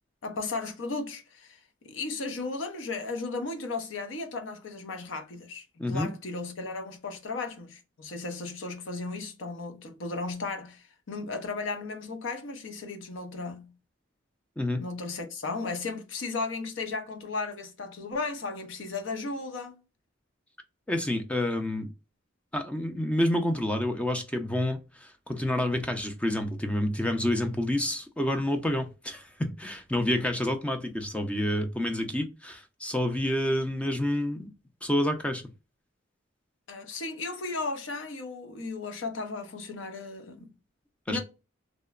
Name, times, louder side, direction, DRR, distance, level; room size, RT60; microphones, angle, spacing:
voice 1, 0.2-13.7 14.8-19.8 36.7-40.5 41.1-41.2, left 3 dB, 80° left, 0.6 m, -35 dB
voice 2, 5.8-6.1 14.6-14.8 20.9-21.9 22.5-34.5 34.8-35.4 41.1-41.2, left 1 dB, 5° left, 0.4 m, -28 dB
2.9 x 2.0 x 2.3 m
head